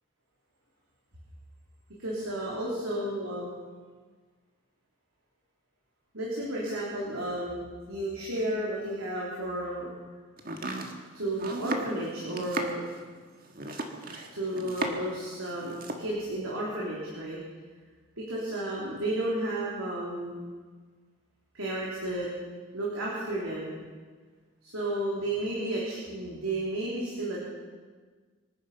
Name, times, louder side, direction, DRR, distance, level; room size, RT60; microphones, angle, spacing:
voice 1, 2.0-3.5 6.1-9.9 11.1-12.8 14.3-17.4 18.2-20.5 21.5-22.3 22.7-23.8 24.6-27.4, right 1 dB, 85° right, -5 dB, 3.4 m, -32 dB
Domestic sounds home sounds, 10.4-15.2 15.5-16.1, right 2 dB, 45° right, 1.6 m, -36 dB
25.0 x 9.8 x 5.5 m, 1.4 s
head